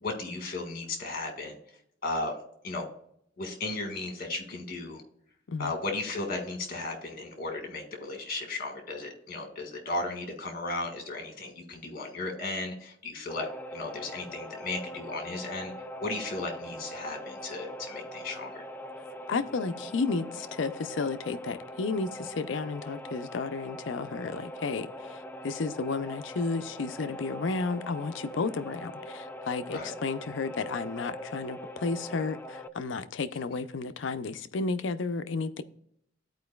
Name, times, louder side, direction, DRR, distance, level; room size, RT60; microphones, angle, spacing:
voice 1, 0.0-1.6 2.0-2.3 2.6-2.9 3.4-5.0 5.6-15.7 16.0-18.6 29.7-29.9, left 2 dB, 50° left, 1.7 m, -35 dB
sound 1, 13.3-32.7, equal, 10° left, 0.3 m, -42 dB
voice 2, 19.3-35.6, left 4 dB, 80° left, 0.5 m, -32 dB
13.0 x 4.6 x 2.3 m
head